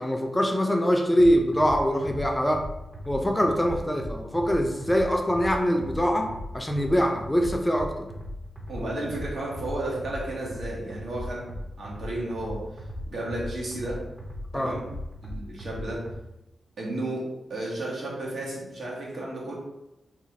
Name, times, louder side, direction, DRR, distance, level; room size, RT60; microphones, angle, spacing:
voice 1, 0.0-2.7 3.1-8.1 8.8-9.2 14.5-14.7, equal, 10° left, 3 dB, 0.4 m, -24 dB
sound 1, 1.2-16.2, left 1 dB, 35° right, 0.7 m, -38 dB
voice 2, 8.7-12.6 13.1-14.0 14.5-14.8 15.2-16.0 16.8-17.2 17.5-19.5, right 1 dB, 75° right, -4 dB, 1.0 m, -33 dB
3.0 x 2.4 x 2.8 m, 0.91 s
cardioid pair, 70°, 0 cm